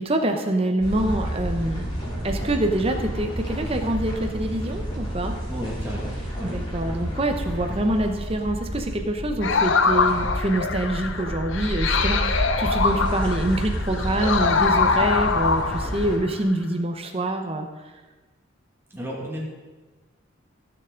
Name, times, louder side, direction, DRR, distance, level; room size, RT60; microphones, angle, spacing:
voice 1, 0.0-1.9 2.2-5.3 6.5-17.7, right 1 dB, 30° right, 4 dB, 0.9 m, -25 dB
sound 1, 0.8-16.2, equal, 25° left, 3.0 m, -30 dB
voice 2, 5.5-6.6 18.9-19.5, equal, 10° right, -4 dB, 2.2 m, -33 dB
sound 2, 9.4-16.3, left 4 dB, 65° left, 0.8 m, -23 dB
15.5 x 6.9 x 3.9 m, 1.2 s
head